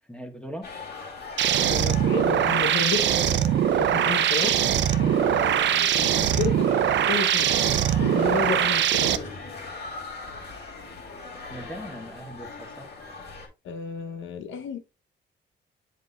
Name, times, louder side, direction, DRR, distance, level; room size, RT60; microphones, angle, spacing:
voice 1, 0.1-0.7 11.5-12.9, right 1 dB, 5° left, 1.3 m, -40 dB
sound 1, 0.6-13.5, left 3 dB, 55° left, 2.3 m, -40 dB
sound 2, 1.4-9.2, right 10 dB, 65° right, 0.6 m, -22 dB
voice 2, 1.5-3.2 3.8-4.7 5.0-6.7 7.1-7.6 8.0-9.3 13.6-14.8, left 6 dB, 75° left, 1.0 m, -31 dB
7.6 x 5.4 x 2.3 m
cardioid pair, 90°, 20 cm